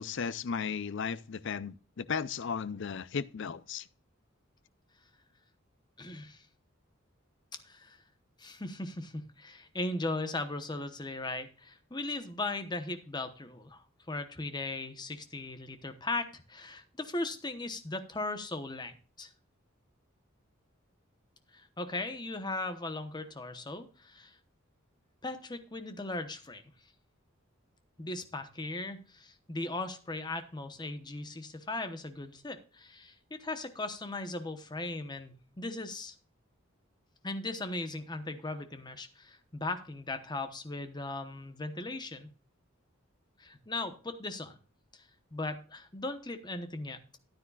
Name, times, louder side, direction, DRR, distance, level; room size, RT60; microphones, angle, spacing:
voice 1, 0.0-3.8, left 6 dB, 60° left, 0.5 m, -35 dB
voice 2, 6.0-6.4 7.6-8.0 8.4-19.3 21.5-24.3 25.2-26.6 28.0-36.1 37.2-42.3 43.4-44.6 44.9-47.2, left 2 dB, 20° left, 1.0 m, -38 dB
13.5 x 9.6 x 2.4 m
head